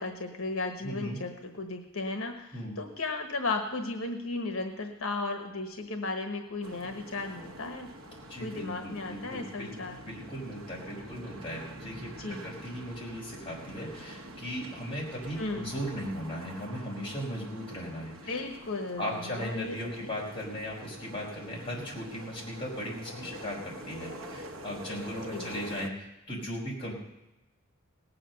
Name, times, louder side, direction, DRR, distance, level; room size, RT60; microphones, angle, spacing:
voice 1, 0.0-7.9 8.4-10.0 12.2-12.5 15.4-15.7 18.2-20.1 25.3-25.5, left 3 dB, 85° left, 5 dB, 1.3 m, -35 dB
voice 2, 0.8-1.2 2.5-2.8 8.3-9.7 10.1-18.3 19.0-26.9, equal, 25° left, -3 dB, 4.5 m, -37 dB
sound 1, 6.6-25.9, right 1 dB, 70° right, 1.1 m, -46 dB
18.0 x 7.7 x 6.6 m, 0.95 s
head